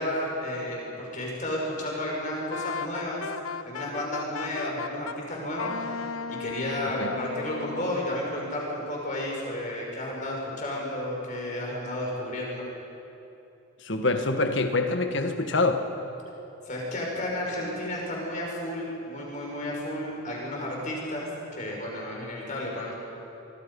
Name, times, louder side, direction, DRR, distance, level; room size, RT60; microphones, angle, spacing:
voice 1, 0.0-3.3 3.6-12.7 16.7-22.9, left 1 dB, 35° left, -2 dB, 5.6 m, -32 dB
Wind instrument woodwind instrument, 2.5-5.2 5.6-8.0, left 5 dB, 75° left, 0.6 m, -36 dB
voice 2, 13.8-15.8, left 2 dB, 55° left, 6 dB, 1.6 m, -25 dB
24.0 x 24.0 x 5.5 m, 3.0 s
head